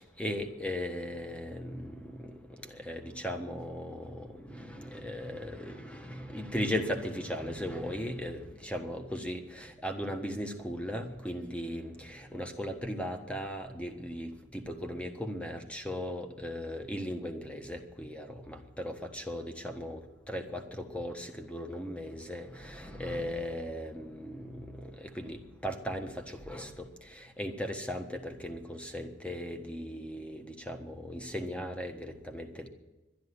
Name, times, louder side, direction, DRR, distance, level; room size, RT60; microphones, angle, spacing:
voice 1, 0.0-2.3 2.7-20.0 20.3-32.7, equal, 5° left, 5 dB, 1.4 m, -37 dB
12.0 x 10.5 x 9.8 m, 1.1 s
head